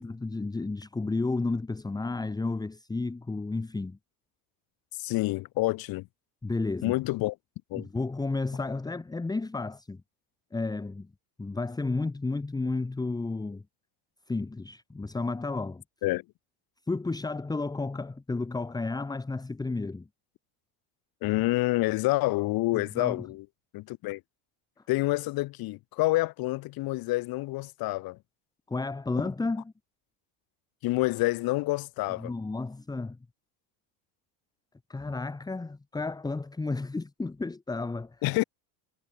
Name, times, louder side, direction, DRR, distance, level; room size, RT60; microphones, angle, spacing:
voice 1, 0.0-4.0 6.4-7.0 7.8-10.0 10.5-11.1 11.4-13.6 14.3-15.8 16.9-20.1 22.7-23.2 28.7-29.6 32.2-33.2 34.9-38.2, left 3 dB, 10° left, 2.3 m, -32 dB
voice 2, 4.9-6.1 6.8-7.4 7.7-7.9 16.0-16.2 21.2-23.4 23.7-24.2 24.9-28.2 30.8-32.3 38.2-38.4, left 19 dB, 45° left, 2.6 m, -28 dB
supercardioid pair, 150°, 48 cm